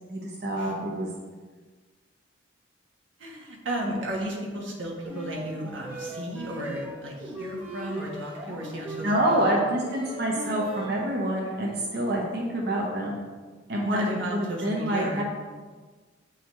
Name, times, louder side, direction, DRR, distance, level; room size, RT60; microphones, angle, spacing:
voice 1, 0.1-1.1 9.0-13.2 13.7-14.1 14.3-15.2, right 1 dB, 55° right, -2 dB, 0.8 m, -27 dB
voice 2, 3.2-9.8 13.8-15.2, right 1 dB, 90° right, -2 dB, 1.3 m, -34 dB
sound 1, 5.0-11.1, equal, 10° right, 1.0 m, -38 dB
8.3 x 4.0 x 3.1 m, 1.4 s
head